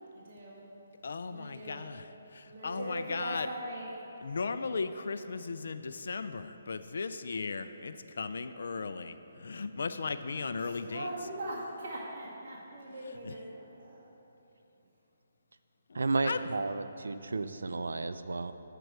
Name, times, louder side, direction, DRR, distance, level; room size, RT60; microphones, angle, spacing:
voice 1, 0.1-0.6 1.2-1.9 2.5-3.9 10.6-14.2, right 1 dB, 45° right, -8 dB, 1.8 m, -41 dB
voice 2, 1.0-2.1 2.3-3.5 4.2-11.1 13.2-13.3 15.9-16.5, left 4 dB, 70° left, 10 dB, 0.4 m, -36 dB
voice 3, 15.9-18.5, right 3 dB, 90° right, 11 dB, 0.4 m, -32 dB
7.5 x 4.6 x 6.6 m, 3.0 s
hypercardioid pair, 160°, 0 cm